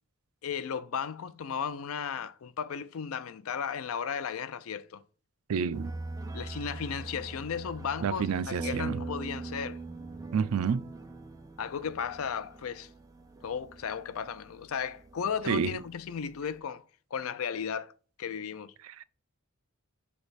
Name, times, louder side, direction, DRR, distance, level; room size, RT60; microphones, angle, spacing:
voice 1, 0.4-5.0 6.3-9.8 11.6-12.9 13.4-16.8 17.1-17.9 18.2-18.7, left 7 dB, 70° left, 0.4 m, -35 dB
voice 2, 5.5-5.9 8.0-9.0 10.3-10.8 15.5-15.8 18.9-19.0, right 6 dB, 75° right, 0.4 m, -29 dB
sound 1, 5.7-16.6, right 3 dB, 15° right, 0.6 m, -42 dB
6.9 x 3.4 x 4.0 m
head